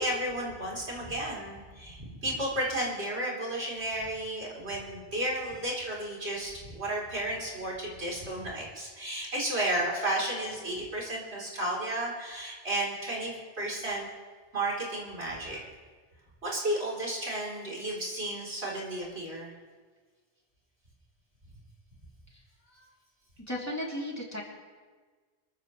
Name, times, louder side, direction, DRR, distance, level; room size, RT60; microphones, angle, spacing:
voice 1, 0.0-14.1 14.5-15.7 16.4-19.5 22.8-22.9, right 1 dB, 90° right, -4 dB, 3.9 m, -33 dB
voice 2, 23.5-24.4, left 1 dB, 15° left, -3 dB, 2.9 m, -35 dB
26.5 x 14.5 x 3.2 m, 1.5 s
omnidirectional pair, 1.1 m